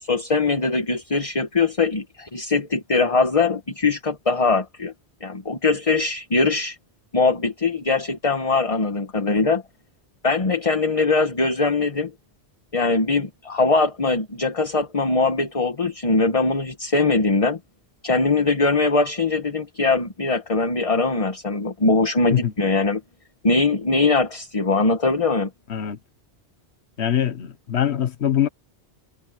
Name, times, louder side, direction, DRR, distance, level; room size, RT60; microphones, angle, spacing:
voice 1, 0.0-4.9 5.2-6.8 7.1-9.6 10.2-12.1 12.7-17.6 18.0-23.0 23.4-25.5, left 3 dB, 30° left, 1.3 m, -21 dB
voice 2, 27.0-28.5, left 10 dB, 75° left, 1.3 m, -23 dB
omnidirectional pair, 1.1 m